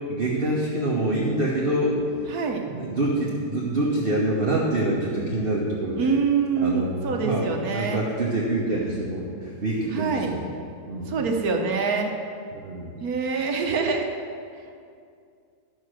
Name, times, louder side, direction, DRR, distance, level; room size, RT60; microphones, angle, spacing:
voice 1, 0.1-2.0 2.7-6.1 6.6-7.5 7.7-10.5 10.9-11.3 12.5-12.9, right 1 dB, 40° right, -5 dB, 1.2 m, -26 dB
voice 2, 2.3-2.7 6.0-8.1 9.9-10.3 11.1-12.1 13.0-14.0, right 5 dB, 65° right, 3 dB, 1.3 m, -25 dB
11.0 x 6.5 x 6.4 m, 2.4 s
omnidirectional pair, 1.8 m